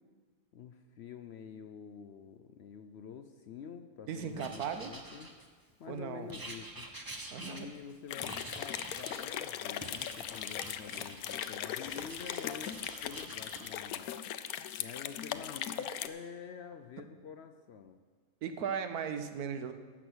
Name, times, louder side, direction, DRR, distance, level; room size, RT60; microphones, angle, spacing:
voice 1, 0.5-5.3 5.8-6.9 7.4-12.8 13.0-14.1 14.8-18.0, left 7 dB, 65° left, 8 dB, 0.7 m, -48 dB
voice 2, 4.1-4.9 5.9-6.3 7.3-7.7 18.4-19.7, right 7 dB, 90° right, 8 dB, 1.3 m, -37 dB
Writing, 4.4-5.7 6.3-7.9 8.2-9.3 9.8-11.5 11.9-13.7, right 1 dB, 20° right, 0.7 m, -47 dB
sound 1, 8.1-16.1, left 10 dB, 80° left, 1.1 m, -39 dB
12.0 x 8.2 x 6.2 m, 1.5 s
omnidirectional pair, 1.5 m